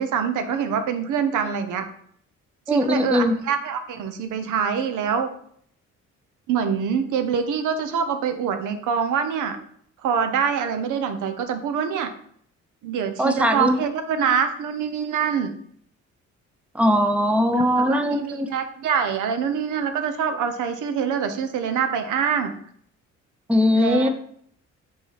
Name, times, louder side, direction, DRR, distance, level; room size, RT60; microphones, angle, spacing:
voice 1, 0.0-1.8 2.7-5.3 6.5-9.6 10.0-12.1 12.8-15.5 17.5-22.5 23.7-24.1, right 7 dB, 85° right, 8 dB, 0.8 m, -25 dB
voice 2, 2.7-3.4 13.2-13.8 16.7-18.5 23.5-24.1, left 1 dB, 5° right, 6 dB, 0.6 m, -20 dB
6.1 x 4.0 x 4.1 m, 0.64 s
cardioid pair, 90°, 30 cm